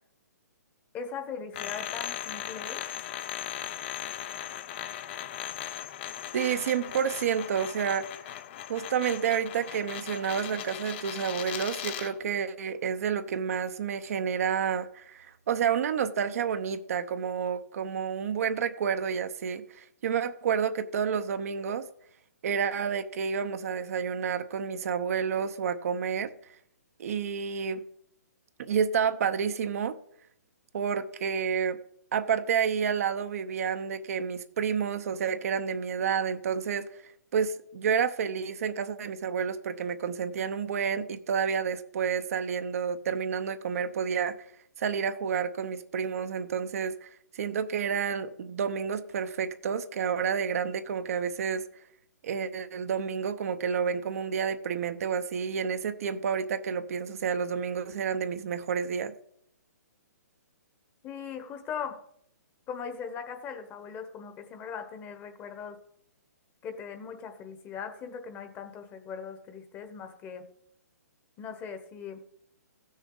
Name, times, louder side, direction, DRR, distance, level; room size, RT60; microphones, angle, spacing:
voice 1, 0.9-2.8 61.0-62.0 62.7-65.8 66.6-70.5 71.4-72.2, left 6 dB, 20° left, 1.1 m, -39 dB
sound 1, 1.5-12.2, left 11 dB, 40° left, 0.6 m, -38 dB
voice 2, 6.3-8.0 8.7-21.9 22.4-26.3 27.0-27.8 28.6-30.0 30.7-31.8 32.1-36.9 37.3-44.4 44.8-47.1 47.3-51.6 52.2-59.1, right 7 dB, 55° right, 0.8 m, -30 dB
15.5 x 6.4 x 3.9 m
hypercardioid pair, 135°, 9 cm